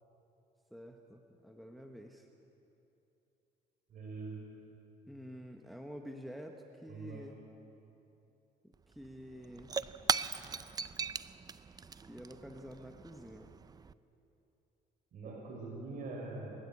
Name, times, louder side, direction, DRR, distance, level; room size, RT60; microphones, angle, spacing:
voice 1, 0.7-2.3 5.1-7.4 8.6-9.7 11.7-11.8 12.1-13.5, equal, ahead, 2 dB, 1.3 m, -49 dB
voice 2, 3.9-4.4 6.9-7.2 15.1-16.6, right 3 dB, 55° right, -2 dB, 4.9 m, -43 dB
Shatter / Crushing, 8.7-8.8 9.0-13.9, right 5 dB, 25° right, 0.5 m, -38 dB
28.0 x 13.0 x 8.6 m, 2.8 s
cardioid pair, 110°, 17 cm